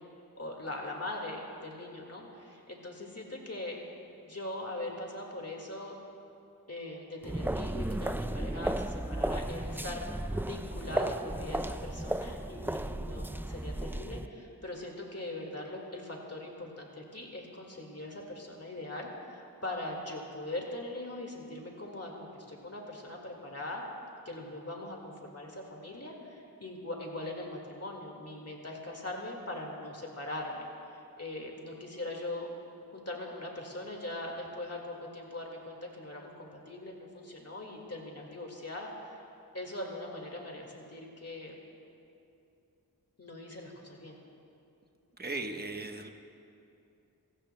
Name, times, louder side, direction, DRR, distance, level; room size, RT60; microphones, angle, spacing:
voice 1, 0.4-6.0 6.7-23.8 24.3-32.5 32.9-39.2 39.5-41.6 43.2-44.2, left 1 dB, 40° left, 0 dB, 1.9 m, -41 dB
sound 1, 7.2-14.3, right 1 dB, 5° right, 0.3 m, -34 dB
voice 2, 45.2-46.1, right 2 dB, 25° right, 4 dB, 1.1 m, -37 dB
24.5 x 16.5 x 2.2 m, 2.7 s
wide cardioid pair, 55°, 37 cm